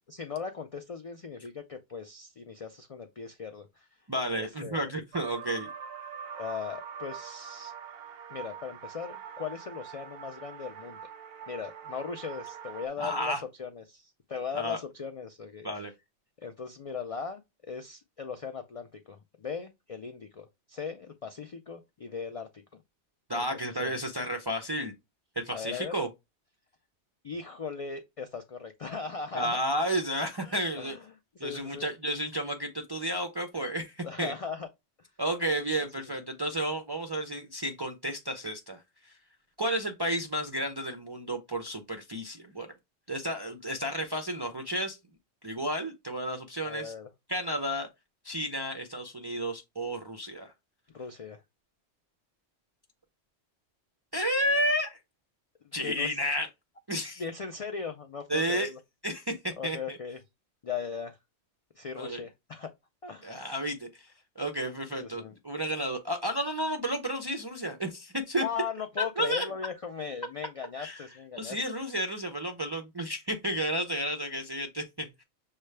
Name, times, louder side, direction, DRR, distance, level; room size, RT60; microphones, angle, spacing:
voice 1, 0.1-3.9 4.4-4.9 6.4-7.7 8.3-11.0 11.5-15.7 16.4-17.4 17.7-22.6 23.3-23.9 25.5-26.0 27.2-29.6 30.4-31.0 31.4-31.9 34.0-34.7 35.8-35.9 46.6-47.1 50.9-51.4 55.8-56.2 57.2-58.8 59.6-60.2 60.6-61.2 61.8-62.7 63.0-63.4 65.0-65.3 68.4-71.6, left 6 dB, 65° left, 0.3 m, -38 dB
voice 2, 4.1-5.7 13.0-13.4 14.5-14.8 15.6-15.9 23.3-24.9 25.4-26.1 29.3-31.0 31.4-34.3 35.2-39.1 39.6-42.7 43.1-45.0 45.4-46.9 47.3-47.9 48.2-50.5 54.1-55.0 55.7-56.5 56.9-57.2 58.3-58.7 59.0-60.0 62.0-62.2 63.2-64.1 64.4-68.4 69.0-69.5 70.8-71.1 71.4-75.2, equal, 40° right, 0.3 m, -32 dB
sound 1, 5.1-12.9, right 7 dB, 65° right, 0.7 m, -44 dB
6.4 x 2.3 x 3.2 m
omnidirectional pair, 1.2 m